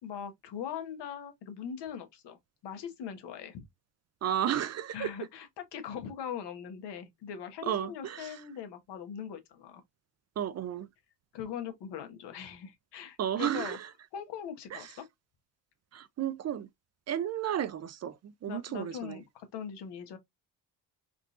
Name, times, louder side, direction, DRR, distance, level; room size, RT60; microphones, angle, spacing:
voice 1, 0.0-2.4 2.6-3.6 4.9-9.8 11.3-13.8 14.1-15.0 18.5-20.2, left 8 dB, 75° left, 1.1 m, -41 dB
voice 2, 4.2-5.1 7.6-8.4 10.4-10.9 13.2-13.9 14.7-14.9 15.9-16.7 17.1-19.2, right 10 dB, 40° right, 0.4 m, -33 dB
3.7 x 2.5 x 2.4 m
cardioid pair, 90°, 42 cm